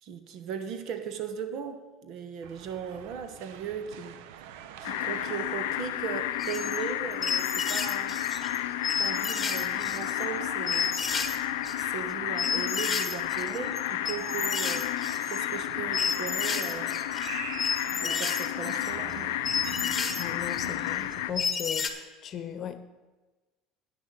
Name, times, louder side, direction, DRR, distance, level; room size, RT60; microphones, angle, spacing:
voice 1, 0.0-4.2 4.8-8.2 8.9-10.9 11.7-14.9 15.3-17.0 17.8-19.4, right 7 dB, 60° right, 9 dB, 1.1 m, -38 dB
sound 1, 2.4-21.4, right 9 dB, 85° right, 0.6 m, -45 dB
sound 2, 4.8-21.3, left 15 dB, 85° left, 0.4 m, -32 dB
sound 3, 6.4-6.8 7.1-8.6 8.8-10.2 10.7-11.4 11.6-21.9, left 5 dB, 25° left, 1.3 m, -32 dB
voice 2, 20.2-21.9 22.2-22.8, left 9 dB, 50° left, 11 dB, 0.9 m, -37 dB
9.3 x 6.4 x 7.5 m, 1.2 s
supercardioid pair, 95°, 0 cm